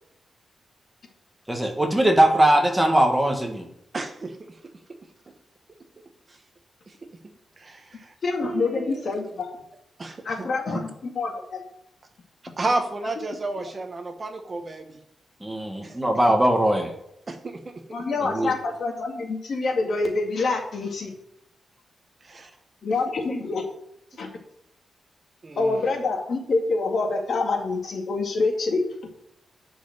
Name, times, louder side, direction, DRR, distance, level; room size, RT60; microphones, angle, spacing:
voice 1, 1.5-3.6 15.4-16.9 18.2-18.5, right 1 dB, 5° right, 3 dB, 1.5 m, -20 dB
voice 2, 3.9-4.4 6.9-7.0 7.6-8.1 8.4-9.1 10.0-10.8 12.6-15.0 15.8-16.0 22.2-22.5 25.4-25.8, right 2 dB, 25° right, 6 dB, 1.1 m, -31 dB
voice 3, 8.2-9.5 10.2-11.6 17.9-21.1 22.8-23.6 24.2-24.3 25.6-28.8, left 3 dB, 50° left, 3 dB, 2.1 m, -26 dB
11.0 x 5.5 x 7.9 m, 0.77 s
wide cardioid pair, 180°, 0 cm